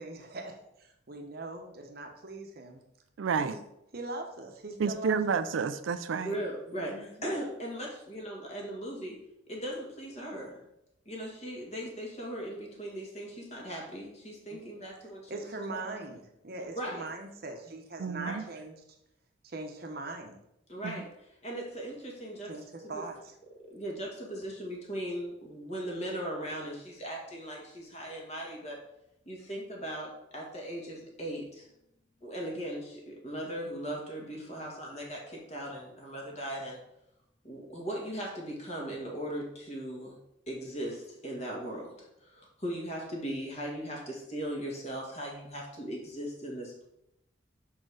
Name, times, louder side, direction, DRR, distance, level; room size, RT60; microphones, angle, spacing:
voice 1, 0.0-2.8 3.4-3.5 3.9-5.1 6.7-7.4 14.5-14.6 15.3-18.8 19.4-20.4 22.5-23.3, right 2 dB, 50° right, 4 dB, 0.9 m, -41 dB
voice 2, 3.2-3.6 4.8-6.4 18.0-18.4 20.8-21.0, right 5 dB, 80° right, 12 dB, 0.4 m, -30 dB
voice 3, 6.2-9.2 9.5-10.6 11.1-15.4 15.7-15.8 16.8-17.1 18.3-18.4 20.7-21.1 21.4-22.5 23.7-28.8 29.3-31.7 32.2-36.8 37.4-40.2 40.5-46.9, right 1 dB, 35° left, -1 dB, 1.8 m, -38 dB
6.0 x 4.4 x 4.8 m, 0.81 s
head